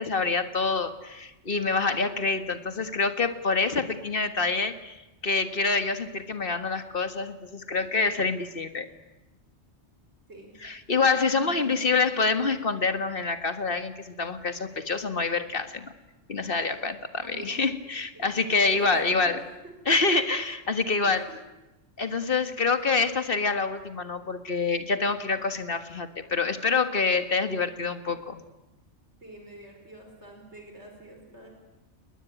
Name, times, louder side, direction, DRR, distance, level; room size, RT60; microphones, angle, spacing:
voice 1, 0.0-5.0 5.2-8.9 10.6-15.9 16.3-19.4 19.9-21.3 22.0-28.4, left 4 dB, 50° left, 9 dB, 1.9 m, -26 dB
voice 2, 11.3-12.1 17.2-17.6 18.1-18.3 18.7-19.7 21.3-21.4 29.2-31.5, right 1 dB, 65° right, 2 dB, 5.0 m, -45 dB
28.5 x 20.5 x 9.3 m, 0.99 s
omnidirectional pair, 1.2 m